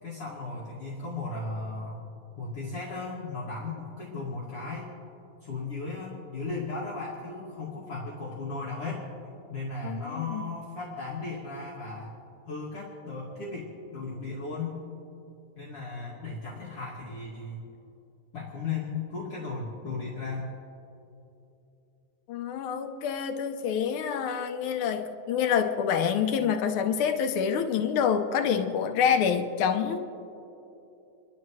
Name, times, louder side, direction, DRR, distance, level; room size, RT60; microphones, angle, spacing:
voice 1, 0.0-4.9 5.4-9.0 9.5-12.1 12.5-14.8 15.6-17.6 18.3-20.5, left 3 dB, 50° left, -7 dB, 2.9 m, -36 dB
voice 2, 9.8-10.4 22.3-30.0, left 7 dB, 90° left, 6 dB, 1.1 m, -27 dB
30.0 x 12.0 x 3.1 m, 2.9 s
omnidirectional pair, 3.3 m